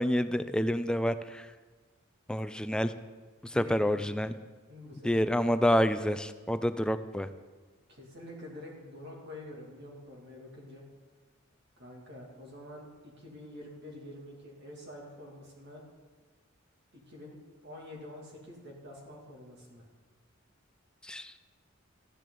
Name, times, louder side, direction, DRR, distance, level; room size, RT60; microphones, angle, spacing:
voice 1, 0.0-1.5 2.3-2.9 3.4-4.3 5.0-7.3 21.0-21.3, equal, 5° left, 11 dB, 0.3 m, -28 dB
voice 2, 3.5-4.1 4.7-5.7 7.9-10.8 11.8-15.8 16.9-17.4 17.6-19.9, left 1 dB, 60° right, -1 dB, 2.5 m, -47 dB
13.5 x 10.5 x 3.9 m, 1.4 s
head